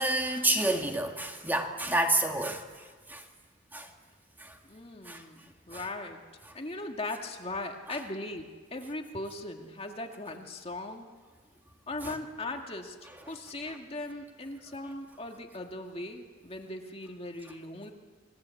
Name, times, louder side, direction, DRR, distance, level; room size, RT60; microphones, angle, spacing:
voice 1, 0.0-2.6 3.1-3.2 3.7-3.9 4.4-4.6 5.1-5.2 5.7-5.8 12.0-12.1 13.7-13.8, right 1 dB, 10° right, 3 dB, 2.0 m, -29 dB
voice 2, 4.7-6.2 6.5-11.1 11.9-17.9, left 2 dB, 30° left, 3 dB, 2.1 m, -39 dB
28.5 x 21.5 x 8.5 m, 1.5 s
head